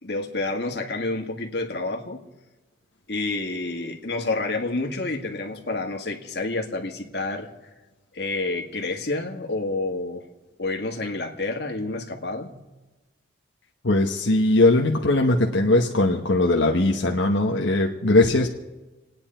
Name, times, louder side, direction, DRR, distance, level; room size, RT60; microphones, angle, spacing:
voice 1, 0.0-2.2 3.1-7.5 8.1-10.3 10.6-12.6, left 2 dB, 60° left, 2 dB, 1.9 m, -29 dB
voice 2, 13.8-18.5, left 2 dB, 80° left, 1 dB, 1.2 m, -20 dB
28.5 x 9.7 x 4.5 m, 1.1 s
head